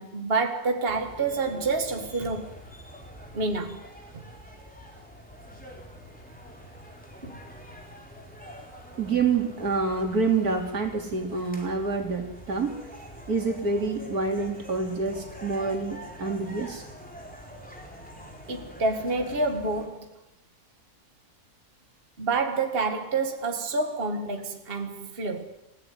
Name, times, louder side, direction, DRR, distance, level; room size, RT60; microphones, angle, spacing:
voice 1, 0.0-2.5 3.3-3.8 4.1-4.2 7.2-7.4 18.5-20.1 22.2-25.4, right 3 dB, 40° right, 2.0 m, -28 dB
sound 1, 0.9-19.9, equal, 5° left, 4.3 m, -45 dB
voice 2, 9.0-12.8 13.3-16.9, right 4 dB, 75° right, 3.5 m, -27 dB
28.0 x 16.0 x 9.4 m
omnidirectional pair, 1.6 m